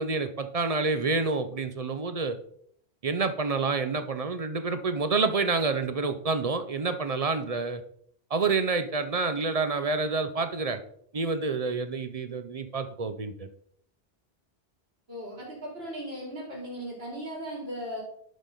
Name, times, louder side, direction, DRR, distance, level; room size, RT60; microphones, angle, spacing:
voice 1, 0.0-2.4 3.0-7.8 8.3-10.8 11.1-13.5, right 4 dB, 45° right, 9 dB, 0.6 m, -28 dB
voice 2, 15.1-18.0, equal, 75° right, -2 dB, 3.3 m, -37 dB
11.5 x 5.2 x 3.8 m, 0.65 s
omnidirectional pair, 1.1 m